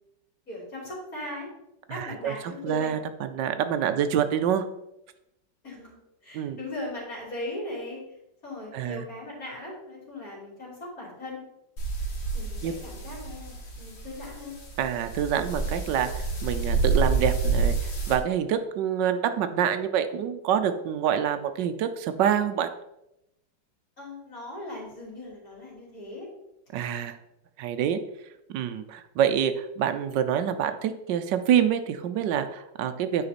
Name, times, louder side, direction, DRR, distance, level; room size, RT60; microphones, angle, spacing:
voice 1, 0.5-1.5 1.9-2.9 3.9-4.0 5.6-6.0 6.2-8.0 8.4-11.4 12.3-14.5 24.0-26.3 27.9-28.0, left 1 dB, 50° left, -6 dB, 3.5 m, -38 dB
voice 2, 1.9-4.6 6.3-6.6 8.7-9.0 12.6-12.7 14.8-22.7 26.7-27.2 27.6-28.0 28.5-33.3, right 9 dB, 80° right, 10 dB, 1.3 m, -26 dB
sound 1, 11.8-18.1, right 4 dB, 85° left, 2.5 m, -29 dB
9.6 x 5.0 x 4.2 m, 0.86 s
omnidirectional pair, 1.9 m